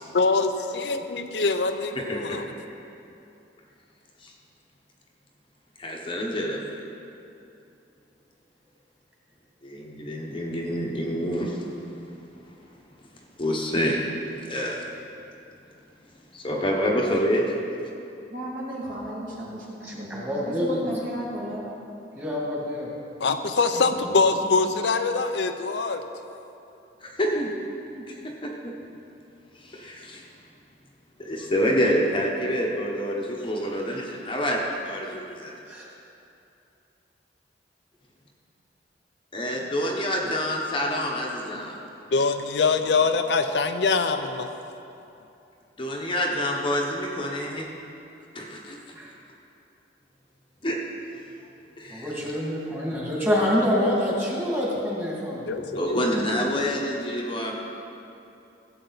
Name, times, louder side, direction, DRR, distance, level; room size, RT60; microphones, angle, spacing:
voice 1, 0.0-2.4 23.2-26.0 41.5-41.6 42.1-44.5 55.5-56.1, left 4 dB, 70° left, 7 dB, 0.6 m, -24 dB
voice 2, 2.1-2.4 4.2-4.3 5.8-6.8 9.6-11.6 13.4-14.0 14.5-14.8 16.3-17.4 27.0-27.5 28.1-28.2 28.6-28.7 29.6-30.2 31.2-35.5 39.3-41.7 45.8-47.7 48.3-48.8 50.6-50.8 51.8-52.1 55.8-57.5, equal, 30° left, -1 dB, 1.0 m, -27 dB
voice 3, 18.3-21.7 23.7-24.6 27.9-28.0, equal, 50° right, -6 dB, 2.7 m, -35 dB
voice 4, 19.8-21.0 22.1-22.9 35.7-35.8 41.0-41.1 48.9-49.1 51.9-55.6 56.1-56.3, equal, 10° right, -5 dB, 2.3 m, -27 dB
15.5 x 7.8 x 4.0 m, 2.8 s
head